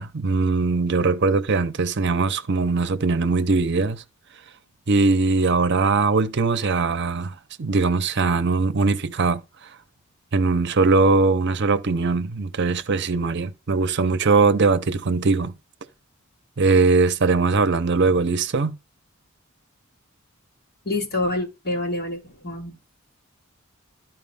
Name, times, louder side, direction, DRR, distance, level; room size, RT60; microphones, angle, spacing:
voice 1, 0.0-4.0 4.9-9.4 10.3-15.5 16.6-18.7, right 3 dB, 55° right, 0.7 m, -21 dB
voice 2, 20.9-22.8, left 2 dB, 50° left, 2.2 m, -27 dB
13.0 x 4.6 x 3.6 m
head